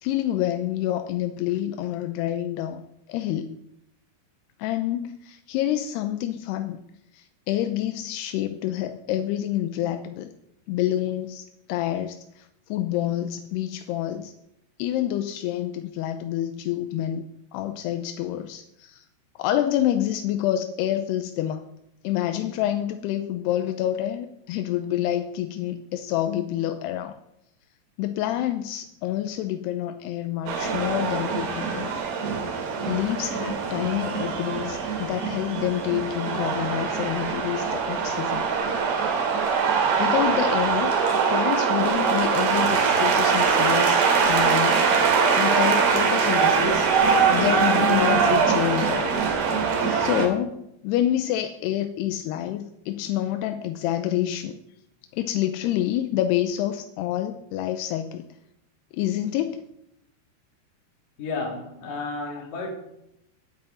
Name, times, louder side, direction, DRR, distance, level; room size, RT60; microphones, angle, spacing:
voice 1, 0.0-3.6 4.6-6.8 7.1-10.3 10.7-14.3 14.8-17.3 17.5-19.0 19.4-21.7 22.0-27.2 28.0-31.9 32.9-38.5 40.0-41.0 41.3-44.9 45.3-46.9 47.3-49.1 49.8-54.6 55.1-58.3 58.9-59.6, left 12 dB, 85° left, 2.7 m, -27 dB
sound 1, 30.5-50.3, right 5 dB, 70° right, 4.3 m, -23 dB
voice 2, 61.2-62.7, left 3 dB, 55° left, 4.4 m, -32 dB
10.0 x 9.3 x 9.7 m
omnidirectional pair, 4.9 m